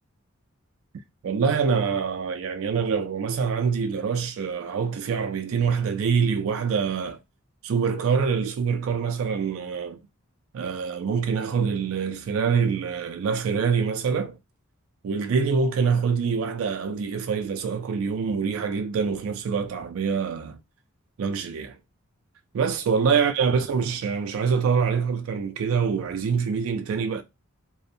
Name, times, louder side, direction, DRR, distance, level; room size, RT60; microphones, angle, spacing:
voice 1, 1.2-7.2 7.6-10.0 10.5-14.4 15.0-20.6 21.2-21.8 22.5-27.2, right 6 dB, 70° right, 0.3 m, -25 dB
2.7 x 2.1 x 2.5 m
head